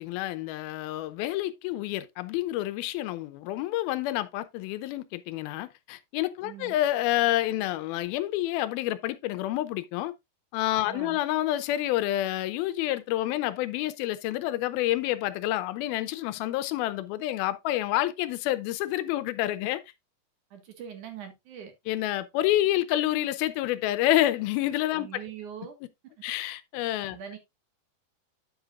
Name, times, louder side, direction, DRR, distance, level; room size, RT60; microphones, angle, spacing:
voice 1, 0.0-10.1 10.5-19.8 21.9-25.1 26.2-27.2, left 14 dB, 80° left, 2.4 m, -28 dB
voice 2, 6.4-6.7 10.9-11.2 20.5-21.7 24.9-25.7 27.1-27.4, right 8 dB, 60° right, 2.8 m, -42 dB
9.8 x 7.8 x 2.5 m
omnidirectional pair, 4.5 m